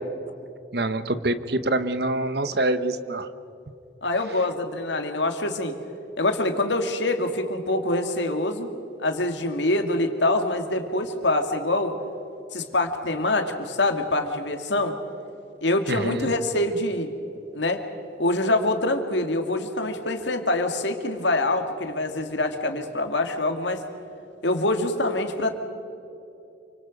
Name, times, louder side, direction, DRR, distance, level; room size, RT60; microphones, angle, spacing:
voice 1, 0.7-3.3 15.9-16.3, right 2 dB, 65° right, 12 dB, 1.2 m, -25 dB
voice 2, 4.0-5.7 6.2-8.7 9.0-12.0 12.5-14.9 15.6-17.1 17.5-17.8 18.2-23.8 24.4-25.5, left 2 dB, 80° left, 6 dB, 2.3 m, -25 dB
28.0 x 25.5 x 5.4 m, 2.8 s
head